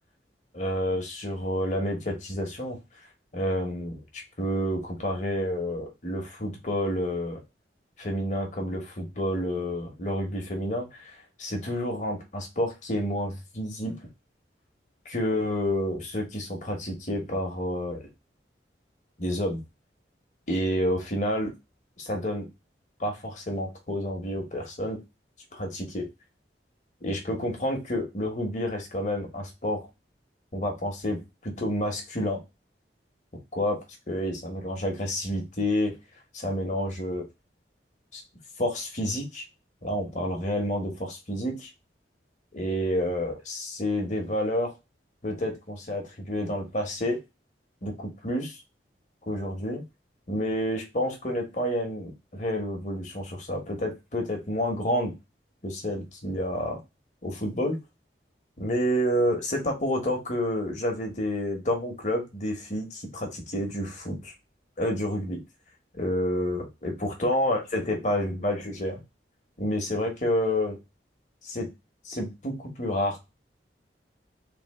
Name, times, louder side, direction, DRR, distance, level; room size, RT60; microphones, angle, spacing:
voice 1, 0.5-2.8 3.3-7.4 8.0-13.9 15.1-18.1 19.2-19.6 20.5-21.5 22.0-22.5 23.0-25.0 25.5-26.1 27.0-29.9 30.5-32.4 33.5-33.8 34.1-35.9 36.3-37.2 38.1-38.2 38.6-39.4 39.8-41.7 42.5-44.7 45.2-47.2 47.8-48.6 49.3-49.8 50.3-55.1 55.6-56.8 57.2-57.8 58.6-64.3 64.8-65.4 66.0-69.0 69.6-70.8 71.4-71.7 72.0-73.2, equal, 45° left, 2 dB, 1.2 m, -29 dB
3.5 x 2.9 x 4.1 m, 0.24 s
head